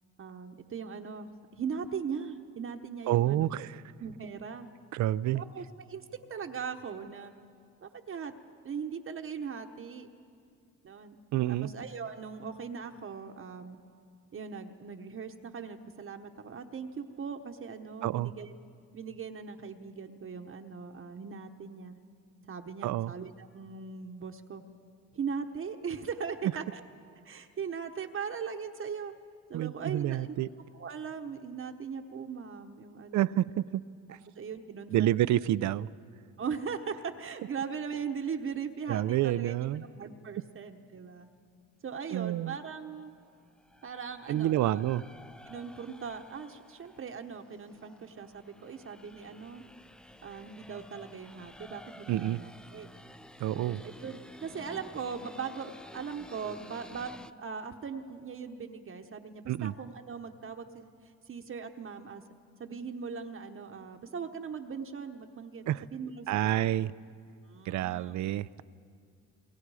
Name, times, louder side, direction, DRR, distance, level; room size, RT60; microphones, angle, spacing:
voice 1, 0.2-3.5 4.0-4.7 5.3-7.3 7.8-8.3 8.6-10.1 10.8-11.2 11.5-13.8 14.3-18.5 18.9-22.0 22.5-24.6 25.1-26.8 27.2-29.1 29.5-30.4 30.7-33.5 34.4-35.3 36.4-39.6 40.0-41.3 41.8-43.1 43.8-44.8 45.5-49.6 50.2-52.9 53.5-62.2 62.6-66.7 67.5-68.2, right 6 dB, 45° right, 4 dB, 1.0 m, -39 dB
voice 2, 3.1-3.8 4.9-5.4 11.3-11.7 18.0-18.3 22.8-23.1 29.5-30.5 33.1-33.8 34.1-34.2 34.9-35.9 38.9-39.8 42.1-42.5 44.3-45.0 52.1-52.4 53.4-53.8 59.5-59.7 65.7-65.8 66.3-66.9 67.7-68.6, right 13 dB, 70° right, 17 dB, 0.5 m, -28 dB
sound 1, 43.3-57.3, left 1 dB, 5° left, 0.4 m, -52 dB
27.0 x 22.5 x 4.9 m, 2.3 s
cardioid pair, 90°, 30 cm